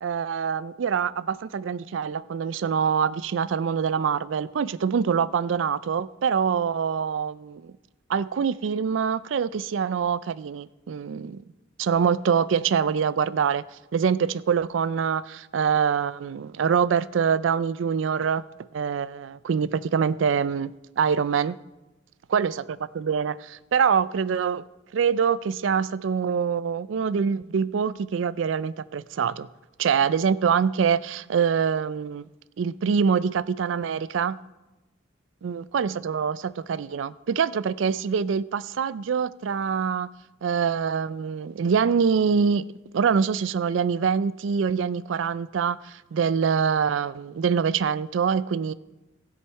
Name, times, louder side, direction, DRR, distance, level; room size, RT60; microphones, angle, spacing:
voice 1, 0.0-7.7 8.1-11.4 11.8-13.6 13.9-18.4 18.7-21.6 22.3-24.6 24.9-29.5 29.8-32.3 32.6-34.4 35.4-40.1 40.4-42.6 42.9-48.7, right 6 dB, 75° right, 0.4 m, -25 dB
18.5 x 6.5 x 4.5 m
head